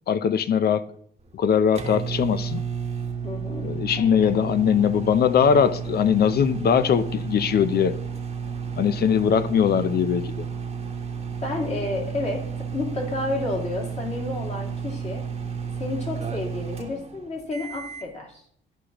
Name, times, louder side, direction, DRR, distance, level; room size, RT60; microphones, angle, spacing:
voice 1, 0.1-0.8 1.3-2.6 3.6-8.0 8.8-10.5, left 7 dB, 55° left, 13 dB, 0.6 m, -21 dB
sound 1, 1.2-18.1, right 6 dB, 30° right, 1.1 m, -32 dB
voice 2, 3.2-4.1 11.4-15.3 15.8-18.4, left 2 dB, 35° left, -1 dB, 2.5 m, -31 dB
13.0 x 5.0 x 3.0 m, 0.64 s
cardioid pair, 90°, 20 cm